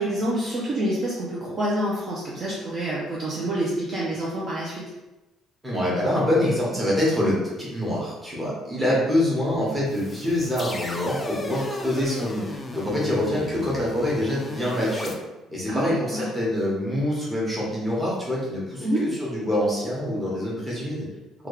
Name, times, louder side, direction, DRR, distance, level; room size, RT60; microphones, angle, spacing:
voice 1, 0.0-4.8 8.7-9.0 15.7-16.3 18.8-19.1, right 1 dB, 35° right, -6 dB, 0.6 m, -27 dB
voice 2, 5.6-15.1 15.5-21.0, left 1 dB, 10° right, -6 dB, 1.1 m, -25 dB
sound 1, 9.9-15.1, left 2 dB, 15° left, 0.3 m, -35 dB
3.2 x 2.4 x 3.2 m, 1.0 s
cardioid pair, 150°, 0 cm